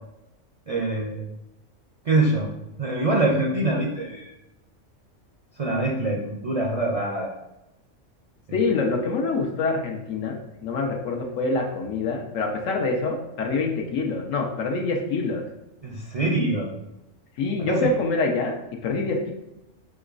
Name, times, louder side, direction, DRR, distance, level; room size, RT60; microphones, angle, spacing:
voice 1, 0.7-1.2 2.1-2.5 2.8-4.3 5.6-7.3 8.5-8.7 15.8-16.7 17.6-17.9, right 2 dB, 50° right, -2 dB, 0.4 m, -24 dB
voice 2, 8.5-15.4 17.4-18.6 18.8-19.3, left 3 dB, 85° left, 1 dB, 1.2 m, -25 dB
6.3 x 3.0 x 2.5 m, 0.92 s
omnidirectional pair, 1.3 m